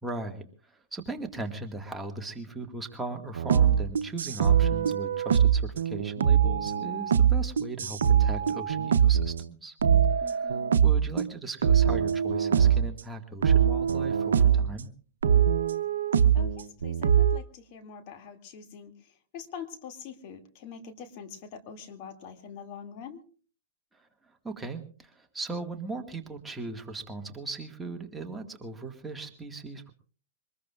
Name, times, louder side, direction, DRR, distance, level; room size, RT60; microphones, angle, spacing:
voice 1, 0.0-9.8 10.1-10.6 10.8-14.9 23.9-29.9, right 3 dB, 10° right, 3 dB, 1.7 m, -38 dB
sound 1, 3.4-9.5 9.8-11.3 11.6-12.9 13.4-14.7 15.2-17.4, right 8 dB, 85° right, 0.8 m, -23 dB
voice 2, 10.2-10.9 16.3-23.2, left 7 dB, 50° left, 6 dB, 2.4 m, -44 dB
24.0 x 20.5 x 2.4 m, 0.40 s
hypercardioid pair, 120°, 0 cm